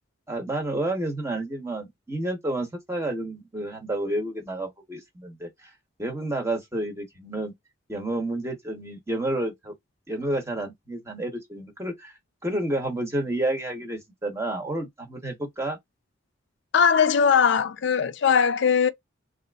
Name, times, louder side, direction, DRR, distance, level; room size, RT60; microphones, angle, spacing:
voice 1, 0.3-5.5 6.0-7.5 7.9-9.7 10.1-12.1 12.4-15.8, right 1 dB, 15° right, 1.0 m, -30 dB
voice 2, 16.7-18.9, left 6 dB, 55° left, 0.4 m, -20 dB
3.9 x 2.5 x 2.3 m
head